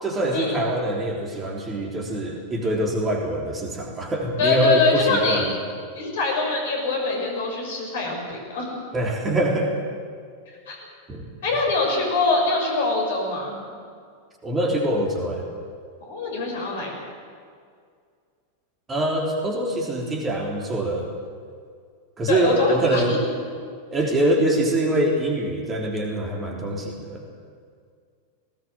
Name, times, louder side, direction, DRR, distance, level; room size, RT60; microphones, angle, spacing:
voice 1, 0.0-5.5 8.9-9.7 11.1-11.3 14.4-15.5 18.9-21.1 22.2-23.2 23.9-27.2, right 1 dB, 20° right, 0 dB, 3.6 m, -24 dB
voice 2, 4.4-5.4 5.9-8.8 10.7-10.8 11.4-13.5 16.0-17.0 22.3-23.0, left 3 dB, 60° left, 0 dB, 6.2 m, -23 dB
18.5 x 18.5 x 7.8 m, 2.1 s
figure-of-eight pair, 90°, 0 cm